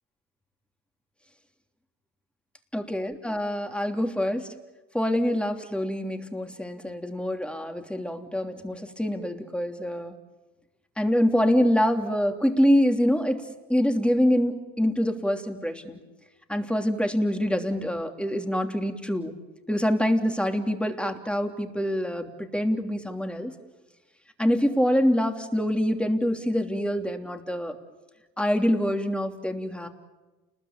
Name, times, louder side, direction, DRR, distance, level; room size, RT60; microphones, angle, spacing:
voice 1, 2.7-4.5 4.9-10.2 11.0-16.0 16.5-19.3 19.7-23.5 24.4-27.8 28.4-29.9, equal, 5° left, 5 dB, 3.1 m, -25 dB
29.5 x 21.0 x 8.9 m, 1.1 s
supercardioid pair, 90°, 31 cm